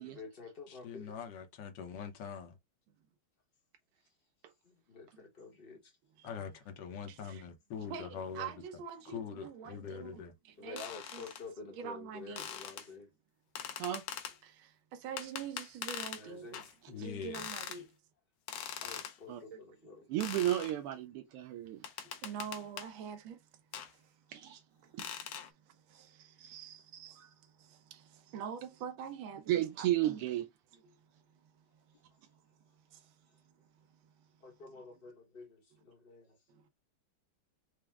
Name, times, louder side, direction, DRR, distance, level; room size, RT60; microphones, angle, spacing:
voice 1, 0.0-1.1 4.6-6.0 10.6-13.1 16.1-16.6 18.8-20.1 26.6-26.7 34.4-36.4, left 3 dB, 40° left, 0.9 m, -50 dB
voice 2, 0.7-2.6 6.2-8.6 9.0-10.3 16.9-17.5, left 6 dB, 65° left, 1.4 m, -43 dB
voice 3, 7.1-7.4 7.9-10.8 11.1-11.2 11.7-12.5 14.4-16.6 17.0-18.0 19.5-19.6 22.2-23.5 23.8-24.2 24.7-30.2 30.8-34.3 36.5-36.7, right 7 dB, 70° right, 1.5 m, -47 dB
sound 1, 10.8-11.4 12.4-12.9 13.6-14.4 15.2-16.2 16.5-16.7 17.3-17.8 18.5-19.2 20.2-20.7 21.8-22.9 23.7-23.9 25.0-25.5, left 9 dB, 85° left, 1.6 m, -42 dB
voice 4, 20.1-21.8 24.3-24.6 25.0-25.1 29.5-30.4, right 13 dB, 85° right, 1.6 m, -33 dB
4.7 x 2.1 x 3.4 m
omnidirectional pair, 2.4 m